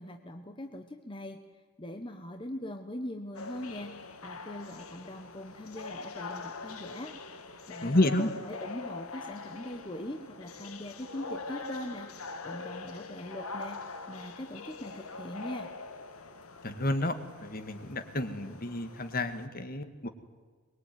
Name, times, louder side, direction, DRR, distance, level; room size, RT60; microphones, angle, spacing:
voice 1, 0.0-4.0 4.2-7.2 7.7-12.1 12.4-15.7, left 1 dB, 25° left, 5 dB, 1.3 m, -41 dB
sound 1, 3.3-19.5, left 3 dB, 90° left, 2.0 m, -43 dB
voice 2, 7.8-8.3 16.6-17.1 17.4-20.1, left 1 dB, 45° left, 9 dB, 1.9 m, -30 dB
23.5 x 22.0 x 9.5 m, 1.5 s
head